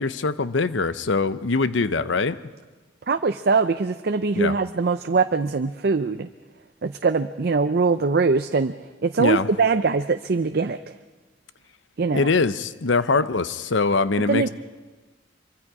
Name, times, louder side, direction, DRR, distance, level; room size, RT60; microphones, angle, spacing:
voice 1, 0.0-2.4 4.4-4.5 9.2-9.5 12.1-14.5, left 4 dB, 80° left, 13 dB, 0.8 m, -23 dB
voice 2, 3.1-6.3 6.8-8.7 9.0-10.9 12.0-12.3 14.3-14.5, right 4 dB, 55° right, 9 dB, 0.5 m, -22 dB
24.5 x 24.0 x 4.8 m, 1.3 s
head